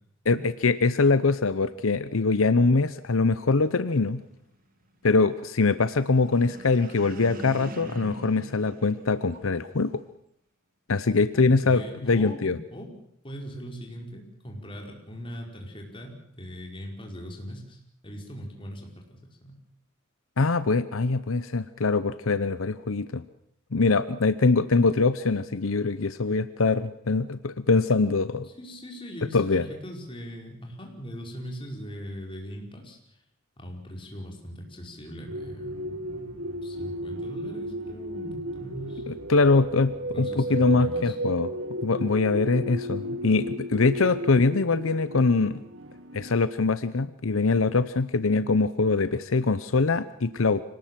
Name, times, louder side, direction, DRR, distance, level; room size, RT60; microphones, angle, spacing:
voice 1, 0.6-4.2 5.0-10.0 10.9-12.6 20.4-23.2 23.7-28.5 29.3-29.6 39.1-41.5 41.8-45.6 46.1-50.6, left 3 dB, 80° left, 13 dB, 0.8 m, -23 dB
sound 1, 6.1-9.7, right 1 dB, 45° right, 2.0 m, -42 dB
voice 2, 11.3-12.9 13.2-19.6 28.4-33.0 33.6-39.0 40.0-41.1, equal, 25° left, 1 dB, 5.0 m, -40 dB
sound 2, 35.3-46.3, right 1 dB, 70° right, 1.6 m, -34 dB
25.5 x 18.5 x 7.6 m, 0.71 s
head